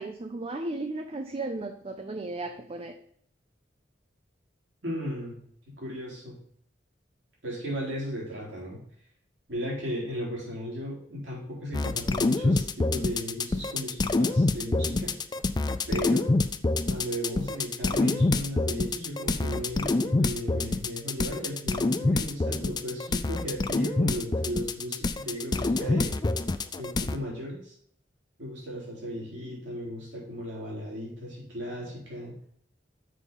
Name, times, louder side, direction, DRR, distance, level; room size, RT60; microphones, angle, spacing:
voice 1, 0.0-2.9, right 2 dB, 30° right, 6 dB, 0.5 m, -35 dB
voice 2, 4.8-5.4 5.8-6.4 7.4-8.8 9.5-15.1 15.9-16.3 16.9-26.2 26.8-27.7 28.4-32.4, equal, 75° right, -4 dB, 3.7 m, -35 dB
sound 1, 11.7-27.2, left 2 dB, 25° left, 0.4 m, -26 dB
6.6 x 5.2 x 5.4 m, 0.66 s
head